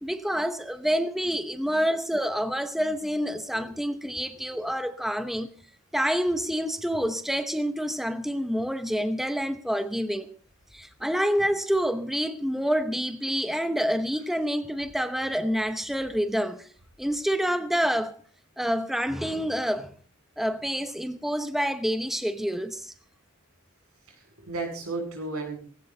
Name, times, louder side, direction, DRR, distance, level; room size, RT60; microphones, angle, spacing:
voice 1, 0.0-5.5 5.9-10.3 10.7-16.7 17.0-18.2 18.6-19.9 20.4-22.9, equal, ahead, 0.8 m, -27 dB
voice 2, 24.1-25.6, right 3 dB, 85° right, 7.8 m, -34 dB
19.0 x 16.5 x 4.0 m
head